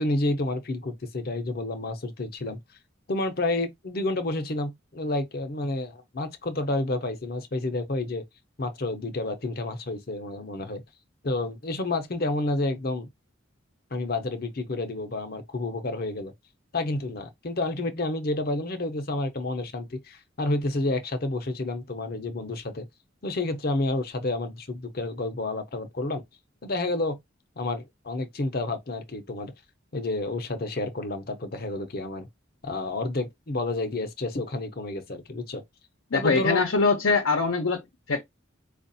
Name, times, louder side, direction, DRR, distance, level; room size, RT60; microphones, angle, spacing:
voice 1, 0.0-2.6 3.1-8.2 8.6-10.8 11.2-13.1 13.9-16.3 16.7-22.9 23.2-26.2 26.6-27.2 27.6-29.5 29.9-32.3 32.6-35.6 36.1-36.6, left 2 dB, 50° left, 0.8 m, -30 dB
voice 2, 36.1-37.8 38.1-38.2, left 4 dB, 80° left, 0.8 m, -23 dB
4.6 x 2.5 x 2.7 m
head